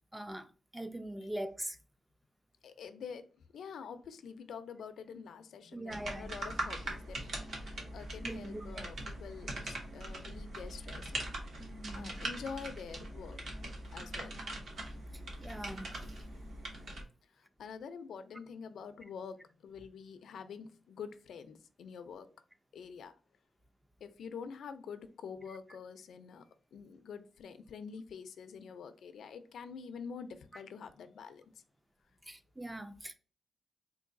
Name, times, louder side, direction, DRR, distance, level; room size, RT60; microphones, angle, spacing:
voice 1, 0.1-1.8 5.7-6.3 8.2-8.9 11.6-12.2 15.4-15.9 30.5-30.6 32.3-33.1, right 1 dB, 10° right, 0.3 m, -42 dB
voice 2, 2.6-11.3 11.9-13.4 13.9-14.4 17.4-22.3 22.7-23.1 24.0-31.6, left 6 dB, 85° left, 0.4 m, -47 dB
sound 1, 5.9-17.0, right 1 dB, 55° right, 0.9 m, -42 dB
3.8 x 2.6 x 2.5 m
wide cardioid pair, 180°, 0 cm